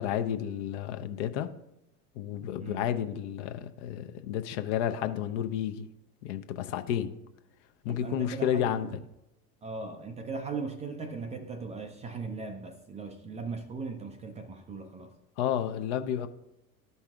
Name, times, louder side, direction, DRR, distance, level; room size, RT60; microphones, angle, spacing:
voice 1, 0.0-1.5 2.2-5.9 6.2-7.1 7.8-8.9 15.4-16.3, left 10 dB, 45° left, 0.7 m, -31 dB
voice 2, 7.9-9.0 9.6-15.1, right 4 dB, 15° right, 0.4 m, -38 dB
13.5 x 5.4 x 2.4 m
figure-of-eight pair, 75°, 48 cm